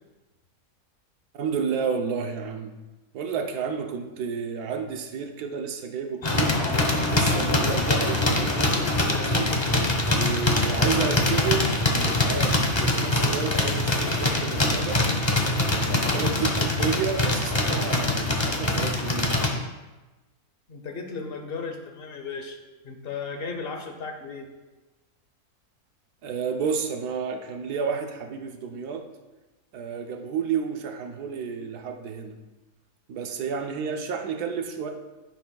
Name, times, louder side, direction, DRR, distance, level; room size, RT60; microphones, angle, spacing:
voice 1, 1.3-2.7 3.1-6.6 7.1-9.5 10.1-15.0 15.6-19.5 26.2-29.1 29.7-32.4 33.1-34.9, right 6 dB, 90° right, 4 dB, 1.3 m, -31 dB
sound 1, 6.2-19.5, left 2 dB, 25° left, 0.7 m, -23 dB
voice 2, 20.7-22.6 22.8-24.5, left 4 dB, 45° left, 5 dB, 1.1 m, -35 dB
10.5 x 9.8 x 2.3 m, 1.1 s
omnidirectional pair, 1.6 m